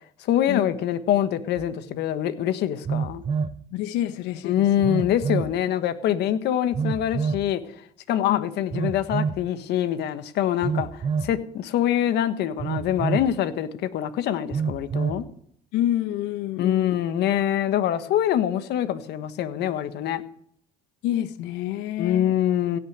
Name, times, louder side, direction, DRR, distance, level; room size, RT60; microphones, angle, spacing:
voice 1, 0.2-3.2 4.4-7.6 8.1-15.3 16.6-20.2 22.0-22.8, left 11 dB, 70° left, 1.3 m, -24 dB
Telephone, 1.6-1.7 2.8-3.6 4.8-5.5 6.7-7.5 8.7-9.4 10.6-11.4 12.6-13.3 14.5-15.2, right 6 dB, 30° right, 0.8 m, -27 dB
voice 2, 3.7-4.7 8.2-8.5 15.7-17.0 21.0-22.3, left 12 dB, 90° left, 0.8 m, -28 dB
16.5 x 6.7 x 8.1 m
cardioid pair, 105°, 18 cm